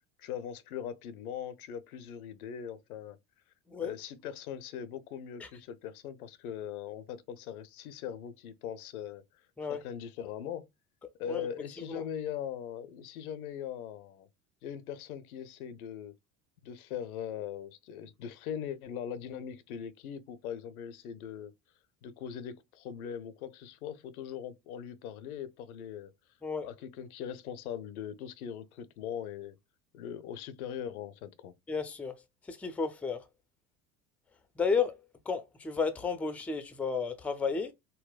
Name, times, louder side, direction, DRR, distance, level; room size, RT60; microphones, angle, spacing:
voice 1, 0.2-3.2 3.8-9.2 9.7-10.7 11.2-14.3 14.6-16.1 16.6-21.5 22.0-26.1 26.6-29.6 29.9-31.5, left 9 dB, 85° left, 0.6 m, -40 dB
voice 2, 31.7-32.1 32.5-33.2 34.6-35.0 35.3-37.7, left 5 dB, 5° left, 0.4 m, -32 dB
3.8 x 2.1 x 2.2 m
hypercardioid pair, 70°, 43 cm